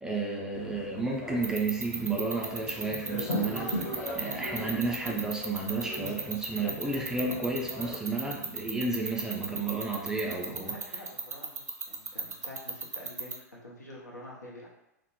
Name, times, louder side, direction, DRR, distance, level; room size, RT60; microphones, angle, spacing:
voice 1, 0.0-10.8, right 3 dB, 5° right, -2 dB, 0.4 m, -32 dB
sound 1, 0.5-8.0, left 1 dB, 35° left, 0.8 m, -39 dB
sound 2, 1.4-13.3, right 5 dB, 75° right, 0.4 m, -34 dB
voice 2, 10.5-14.7, left 1 dB, 85° left, -5 dB, 0.7 m, -47 dB
2.1 x 2.0 x 2.9 m, 0.90 s
figure-of-eight pair, 95°, 9 cm